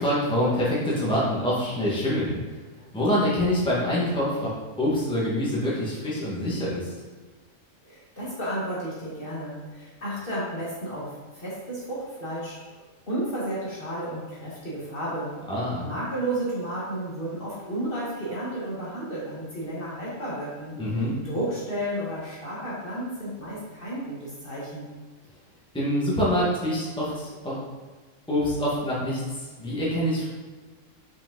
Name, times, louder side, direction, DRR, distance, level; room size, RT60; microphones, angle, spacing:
voice 1, 0.0-2.4 2.9-4.5 4.8-6.9 15.5-15.9 20.7-21.1 25.7-27.5 28.3-30.3, equal, 5° left, -7 dB, 1.5 m, -25 dB
voice 2, 7.8-15.3 15.8-20.8 21.2-24.9, right 1 dB, 40° left, -7 dB, 1.7 m, -32 dB
5.5 x 5.1 x 3.9 m, 1.4 s
omnidirectional pair, 1.4 m